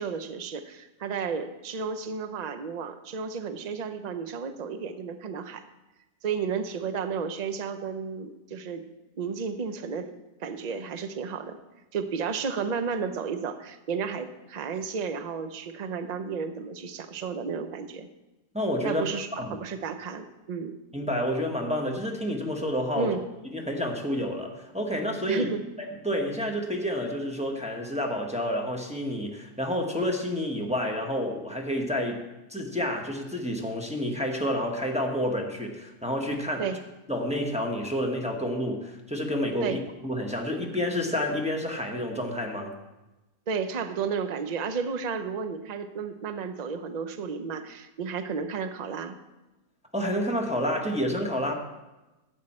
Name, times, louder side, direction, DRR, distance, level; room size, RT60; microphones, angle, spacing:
voice 1, 0.0-5.6 6.2-8.9 9.2-10.1 10.4-11.6 11.9-18.1 18.8-20.8 23.0-23.2 25.3-25.6 36.6-36.8 39.6-39.8 43.5-49.2, right 5 dB, 50° right, 9 dB, 0.5 m, -32 dB
voice 2, 18.5-19.0 19.4-19.6 20.9-23.1 23.5-25.5 25.8-32.2 32.5-36.7 37.1-42.7 49.9-51.5, equal, 5° right, 0 dB, 1.0 m, -29 dB
11.5 x 8.4 x 4.3 m, 1.0 s
omnidirectional pair, 1.6 m